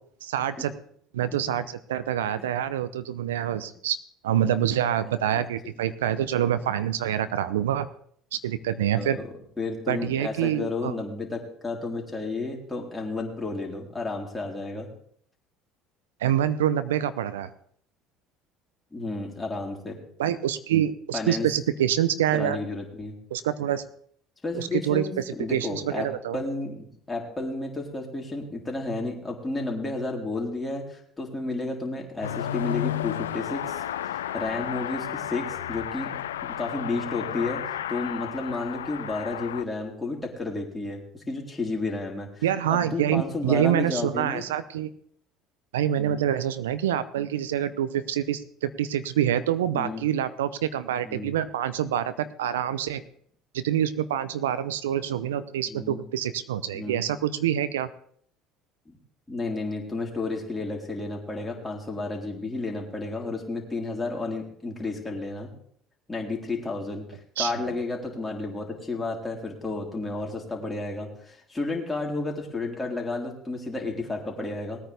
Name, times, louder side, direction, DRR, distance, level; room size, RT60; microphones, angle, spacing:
voice 1, 0.2-0.7 1.1-4.0 4.2-7.9 8.4-9.2 9.9-11.0 16.2-17.5 20.2-22.6 23.3-23.8 24.5-25.1 25.5-26.4 42.4-44.9 45.7-53.0 53.5-57.9 67.4-67.7, right 10 dB, 85° right, 14 dB, 0.6 m, -26 dB
voice 2, 8.9-9.3 9.6-14.9 18.9-20.0 21.1-21.5 22.3-23.1 24.4-26.1 26.3-44.4 46.0-46.2 49.7-50.0 51.0-51.3 55.7-56.0 56.7-57.0 58.9-59.0 59.3-65.5 66.1-74.8, left 3 dB, 15° left, -1 dB, 3.7 m, -32 dB
Car passing by / Accelerating revving vroom, 32.2-39.6, left 11 dB, 85° left, 0.4 m, -32 dB
19.5 x 9.2 x 3.5 m, 0.62 s
hypercardioid pair, 70°, 0 cm